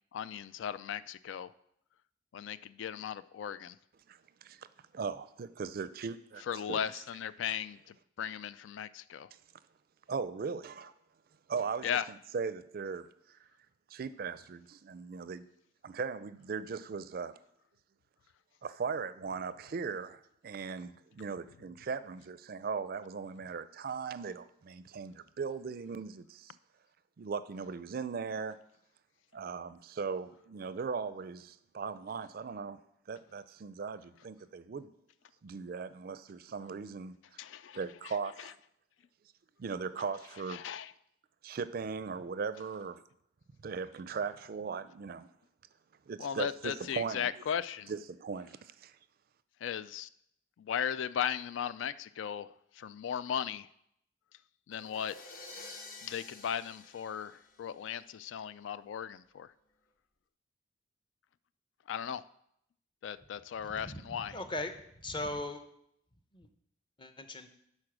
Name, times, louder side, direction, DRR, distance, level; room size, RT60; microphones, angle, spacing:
voice 1, 0.1-1.5 2.3-3.8 6.5-9.3 11.8-12.1 37.4-37.8 40.5-40.9 46.2-47.9 49.6-50.1 50.6-52.5 52.8-53.7 54.7-55.1 56.0-59.5 61.9-62.2 63.0-64.4, left 8 dB, 85° left, 16 dB, 0.3 m, -37 dB
voice 2, 4.1-4.7 4.9-6.4 6.7-6.8 10.1-10.9 11.5-13.4 13.9-15.5 15.8-17.4 18.6-26.6 27.2-28.6 29.3-32.8 33.1-34.9 35.4-37.2 37.8-38.5 39.6-40.6 41.4-43.0 43.6-45.3 46.1-47.4 47.9-48.9, right 5 dB, 50° right, 15 dB, 0.4 m, -38 dB
sound 1, 54.7-58.0, left 2 dB, 50° left, 1.0 m, -50 dB
voice 3, 63.6-64.7 65.0-65.6 66.3-66.5 67.0-67.5, left 1 dB, 25° left, 8 dB, 0.7 m, -39 dB
9.8 x 4.3 x 6.1 m, 0.73 s
head